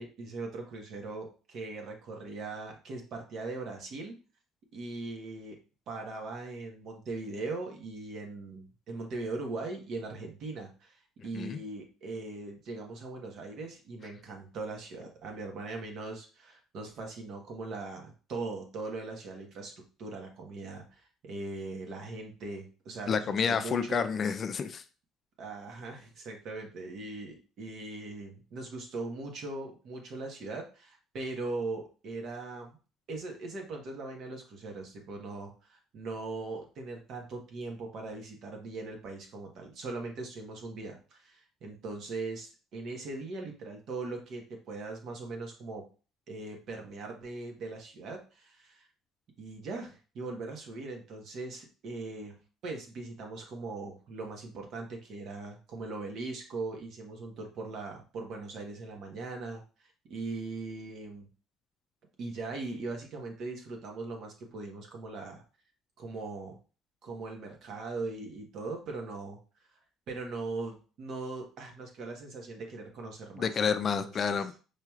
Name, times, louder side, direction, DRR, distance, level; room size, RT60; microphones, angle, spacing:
voice 1, 0.0-4.2 4.7-5.6 5.9-24.0 25.4-32.8 33.1-45.8 46.3-48.9 49.4-61.3 62.2-65.4 66.0-66.6 67.0-69.4 70.1-73.5 73.8-74.4, right 3 dB, 60° right, 2 dB, 1.2 m, -40 dB
voice 2, 23.1-24.8 73.4-74.6, left 6 dB, 45° left, 10 dB, 0.4 m, -29 dB
4.8 x 3.0 x 2.4 m, 0.36 s
supercardioid pair, 95°, 0 cm